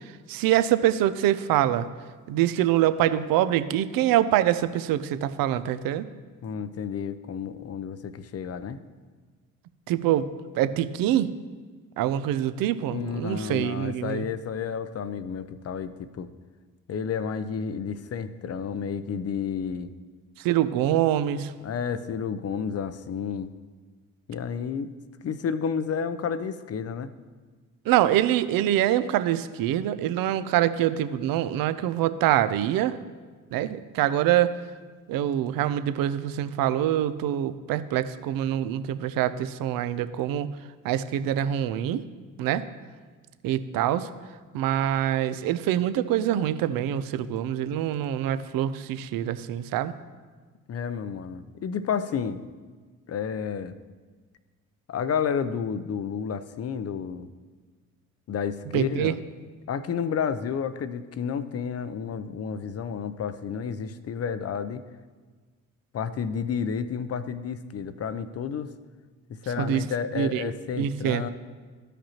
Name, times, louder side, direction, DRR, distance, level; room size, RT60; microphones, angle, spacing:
voice 1, 0.3-1.8 2.3-6.0 9.9-10.3 10.6-11.3 12.0-14.3 20.4-21.5 27.9-33.0 33.5-34.6 35.1-40.5 40.8-42.0 42.4-42.6 43.4-44.1 44.5-49.9 58.7-59.1 69.6-69.8 70.1-71.2, right 12 dB, 60° right, 13 dB, 0.6 m, -25 dB
voice 2, 6.4-8.8 12.9-16.3 16.9-19.9 21.6-23.5 24.3-24.9 25.2-27.1 50.7-52.4 53.1-53.8 54.9-57.3 58.3-59.2 59.7-64.8 65.9-68.7 69.3-71.3, left 7 dB, 40° left, 13 dB, 0.6 m, -31 dB
14.0 x 5.0 x 3.0 m, 1.4 s
hypercardioid pair, 50°, 40 cm